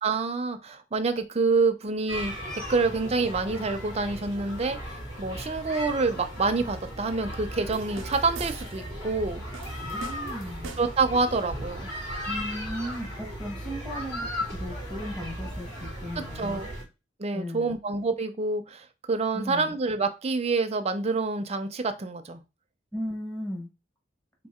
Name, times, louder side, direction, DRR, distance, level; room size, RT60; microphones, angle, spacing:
voice 1, 0.0-9.4 10.8-11.9 16.2-16.7 17.2-22.4, right 3 dB, 35° right, 8 dB, 0.5 m, -27 dB
sound 1, 2.1-16.8, equal, 70° left, 2.3 m, -36 dB
sound 2, 7.7-8.9 9.5-11.1, right 5 dB, 80° right, 0.5 m, -44 dB
voice 2, 9.9-10.7 12.3-16.6 17.3-17.8 19.3-19.7 22.9-23.7, equal, 5° left, 0 dB, 0.9 m, -36 dB
3.7 x 2.6 x 4.2 m, 0.27 s
head